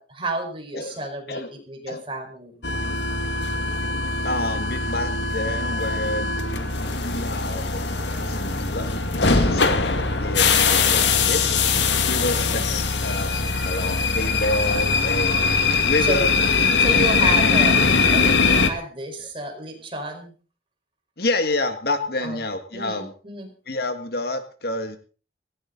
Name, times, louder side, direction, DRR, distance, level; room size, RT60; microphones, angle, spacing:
voice 1, 0.0-2.6 9.4-9.7 12.2-12.6 16.0-16.3 16.8-20.3 22.2-22.4 22.7-23.5, right 1 dB, 30° right, 3 dB, 4.8 m, -32 dB
sound 1, 2.6-18.7, left 4 dB, 80° left, 1.9 m, -21 dB
voice 2, 4.2-6.4 6.9-8.9 9.3-9.8 10.2-11.6 12.1-16.4 21.2-23.1 23.7-25.0, left 2 dB, 60° left, 8 dB, 1.9 m, -28 dB
17.5 x 17.0 x 4.0 m, 0.38 s
head